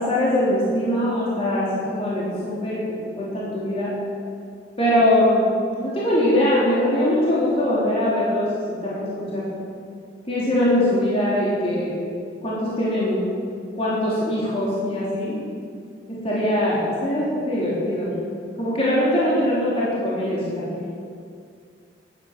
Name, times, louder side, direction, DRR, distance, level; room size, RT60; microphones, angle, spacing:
voice 1, 0.0-3.9 4.8-5.5 5.8-9.5 10.3-12.0 12.4-13.2 13.8-15.4 16.1-18.2 18.6-20.7, left 1 dB, 35° left, -8 dB, 3.6 m, -22 dB
14.5 x 10.0 x 7.5 m, 2.3 s
head